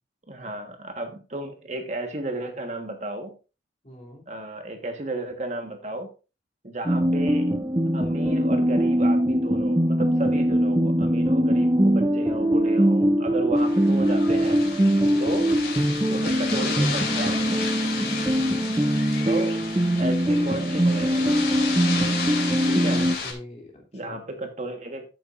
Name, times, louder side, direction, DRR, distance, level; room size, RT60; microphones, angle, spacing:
voice 1, 0.3-3.3 4.3-6.1 6.6-7.5 7.9-14.6 15.2-15.5 16.1-17.9 19.2-19.6 20.0-21.3 22.6-23.0 23.9-25.0, right 1 dB, 40° right, 5 dB, 1.4 m, -33 dB
voice 2, 3.8-4.3 15.0-15.2 22.8-24.2, left 1 dB, 35° left, 0 dB, 2.9 m, -43 dB
sound 1, 6.9-23.2, equal, 15° right, 0.5 m, -22 dB
sound 2, 13.6-23.3, left 4 dB, 55° left, 2.8 m, -32 dB
12.0 x 8.7 x 2.5 m, 0.31 s
head